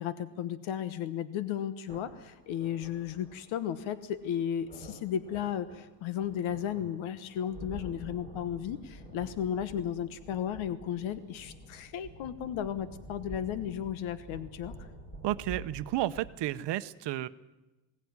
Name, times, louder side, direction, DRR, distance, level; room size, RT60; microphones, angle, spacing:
voice 1, 0.0-14.7, left 9 dB, 80° left, 13 dB, 1.3 m, -34 dB
sound 1, 1.9-16.4, right 1 dB, 15° left, 4.8 m, -48 dB
voice 2, 15.2-17.3, right 14 dB, 60° right, 12 dB, 0.9 m, -32 dB
21.5 x 18.0 x 9.7 m, 1.0 s
cardioid pair, 160°, 47 cm